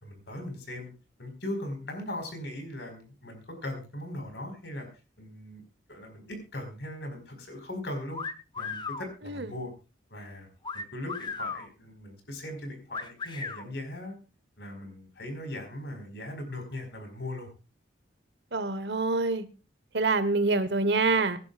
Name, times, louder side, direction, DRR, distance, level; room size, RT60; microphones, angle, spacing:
voice 1, 0.0-0.9 1.2-4.9 5.2-5.6 5.9-8.2 8.6-9.7 10.1-10.5 10.7-14.1 14.6-17.5, left 1 dB, 65° left, 5 dB, 4.9 m, -39 dB
sound 1, 8.1-9.1 10.6-11.7 12.9-13.6, left 5 dB, 25° left, 0.9 m, -36 dB
voice 2, 18.5-19.5 19.9-21.4, right 3 dB, 65° right, 13 dB, 1.1 m, -26 dB
24.0 x 11.0 x 2.4 m, 0.32 s
head